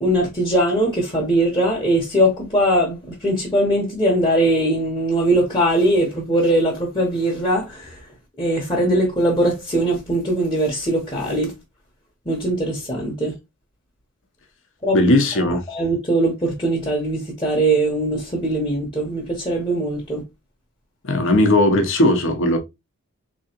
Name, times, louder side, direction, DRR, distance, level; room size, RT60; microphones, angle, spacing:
voice 1, 0.0-8.0 8.4-11.5 12.3-13.3 14.8-15.0 15.5-20.2, right 1 dB, 20° left, 0.9 m, -21 dB
voice 2, 14.9-15.6 21.0-22.6, left 1 dB, 60° left, 0.8 m, -17 dB
3.8 x 3.0 x 2.9 m
head